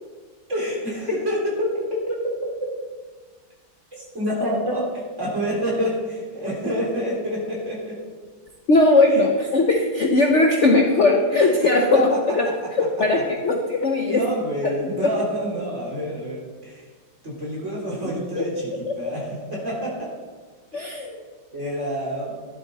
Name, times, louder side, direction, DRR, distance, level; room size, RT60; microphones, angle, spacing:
voice 1, 0.5-2.5 3.9-4.9 5.2-8.0 9.1-9.2 11.4-11.7 14.1-16.8 17.2-20.1 20.7-20.9 21.5-22.3, equal, 40° right, -4 dB, 3.7 m, -27 dB
voice 2, 8.7-12.5 12.8-14.2 14.6-15.1 18.4-18.9 20.7-21.2, left 2 dB, 50° left, 2 dB, 1.0 m, -19 dB
12.5 x 11.0 x 4.2 m, 1.5 s
omnidirectional pair, 2.0 m